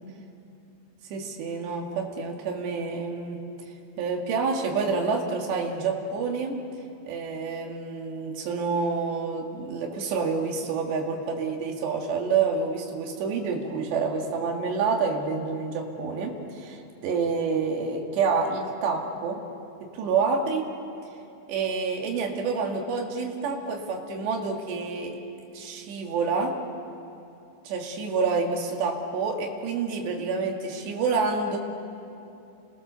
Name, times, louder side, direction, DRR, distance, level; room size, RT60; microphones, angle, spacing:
voice 1, 1.1-3.4 4.0-6.6 7.1-19.4 19.8-20.7 21.5-25.2 25.5-26.6 27.7-31.6, right 4 dB, 70° right, 1 dB, 4.3 m, -28 dB
29.5 x 22.0 x 6.9 m, 2.7 s
omnidirectional pair, 5.4 m